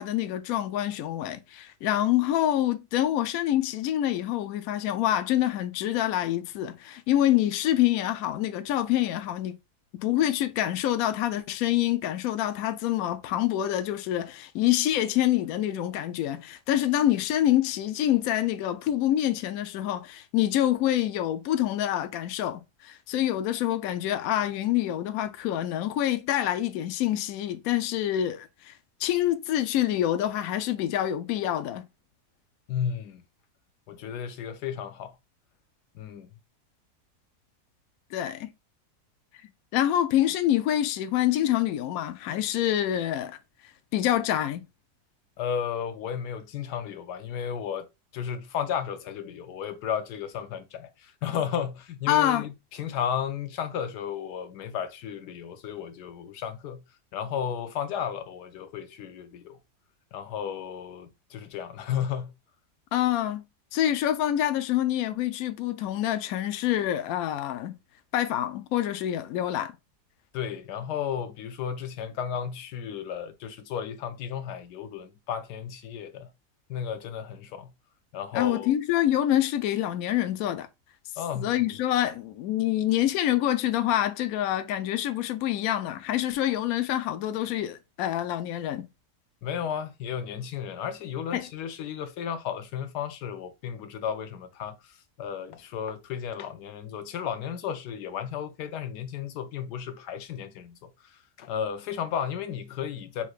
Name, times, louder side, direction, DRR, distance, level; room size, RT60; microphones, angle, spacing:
voice 1, 0.0-9.6 10.0-31.8 38.1-38.5 39.7-43.4 43.9-44.6 52.1-52.5 62.9-63.4 63.7-67.8 68.1-69.7 78.3-80.7 81.3-88.9 91.3-91.5, left 12 dB, 70° left, 1.0 m, -26 dB
voice 2, 32.7-33.2 33.9-35.1 35.9-36.3 45.4-56.8 57.1-59.6 60.1-62.3 70.3-76.3 76.7-77.7 78.1-78.7 81.2-81.5 89.4-94.8 95.2-100.9 101.4-103.3, left 8 dB, 90° left, 1.3 m, -33 dB
5.7 x 3.0 x 2.4 m
omnidirectional pair, 1.7 m